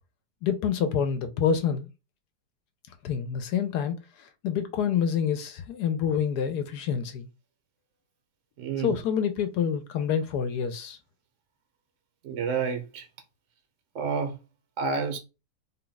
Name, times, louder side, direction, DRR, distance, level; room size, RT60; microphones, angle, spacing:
voice 1, 0.4-1.9 3.0-7.3 8.8-11.0, left 7 dB, 75° left, 1.1 m, -27 dB
voice 2, 8.6-9.0 12.2-13.1 13.9-14.4 14.8-15.2, right 5 dB, 60° right, 0.8 m, -29 dB
3.6 x 2.3 x 3.9 m
omnidirectional pair, 1.8 m